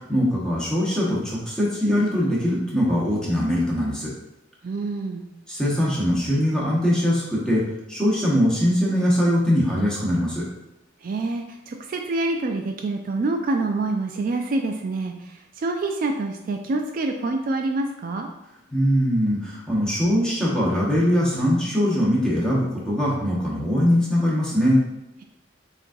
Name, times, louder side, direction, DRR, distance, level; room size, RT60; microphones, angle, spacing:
voice 1, 0.0-4.1 5.5-7.6 7.9-10.4 18.7-24.8, equal, 5° left, -6 dB, 1.0 m, -22 dB
voice 2, 4.6-5.3 11.0-18.3, right 2 dB, 45° right, 3 dB, 0.3 m, -26 dB
6.7 x 2.5 x 2.6 m, 0.89 s
head